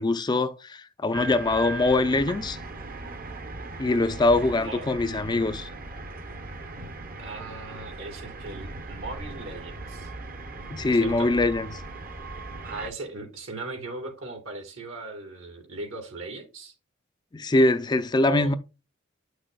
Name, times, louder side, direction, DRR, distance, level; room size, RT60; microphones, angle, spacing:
voice 1, 0.0-2.6 3.8-5.7 10.7-11.6 17.3-18.5, left 2 dB, 20° left, 0.4 m, -23 dB
sound 1, 1.1-12.9, right 2 dB, 45° right, 0.9 m, -38 dB
voice 2, 4.6-4.9 7.2-10.1 10.9-11.3 12.7-16.7 18.2-18.5, right 2 dB, 75° right, 2.4 m, -38 dB
8.5 x 6.2 x 2.2 m
head